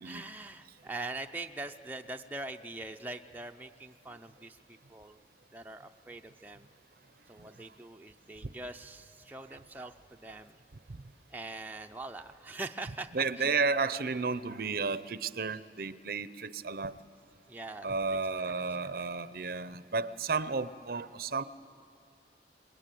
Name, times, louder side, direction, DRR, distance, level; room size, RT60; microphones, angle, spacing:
voice 1, 0.0-5.2 5.5-6.7 7.3-10.6 11.3-13.5 17.5-17.9 18.4-19.0, right 2 dB, 10° right, 4 dB, 0.5 m, -43 dB
voice 2, 13.1-16.9 17.8-21.4, right 4 dB, 55° right, 14 dB, 0.6 m, -32 dB
27.5 x 21.0 x 9.1 m, 2.5 s
head